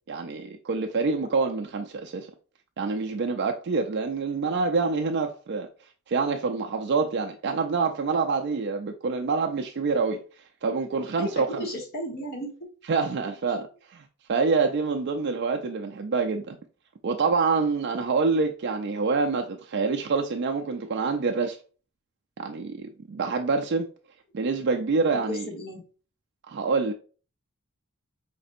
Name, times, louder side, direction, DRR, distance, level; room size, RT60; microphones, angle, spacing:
voice 1, 0.1-2.3 2.8-5.7 6.1-10.2 10.6-11.7 12.9-14.0 14.3-16.6 17.0-21.6 22.4-23.9 24.3-25.5 26.5-26.9, right 4 dB, 50° right, 0.4 m, -26 dB
voice 2, 11.2-12.5 13.5-13.7 24.9-25.8, equal, 45° left, 1.2 m, -35 dB
5.0 x 3.3 x 2.6 m
head